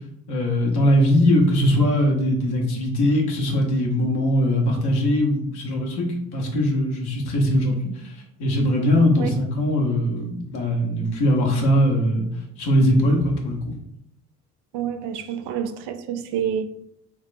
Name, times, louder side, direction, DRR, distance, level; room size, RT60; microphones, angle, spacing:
voice 1, 0.3-12.3 12.6-13.6, equal, 55° left, 1.2 m, -21 dB
voice 2, 14.7-16.7, right 9 dB, 60° right, 0.5 m, -28 dB
6.0 x 2.4 x 2.3 m
figure-of-eight pair, 45°, 46 cm